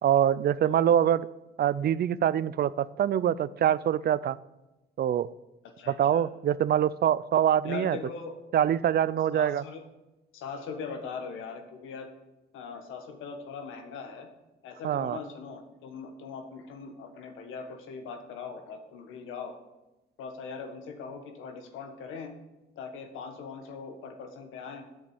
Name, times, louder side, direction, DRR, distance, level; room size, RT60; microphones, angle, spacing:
voice 1, 0.0-1.3 1.6-4.4 5.0-5.3 5.9-8.0 8.5-9.6 14.8-15.2, right 10 dB, 55° right, 19 dB, 0.5 m, -24 dB
voice 2, 5.6-6.3 7.6-8.4 9.3-9.9 10.3-12.1 12.5-14.3 14.6-19.5 20.2-22.4 22.7-24.9, left 5 dB, 90° left, 6 dB, 1.5 m, -40 dB
7.9 x 6.9 x 8.0 m, 0.99 s
cardioid pair, 90°, 20 cm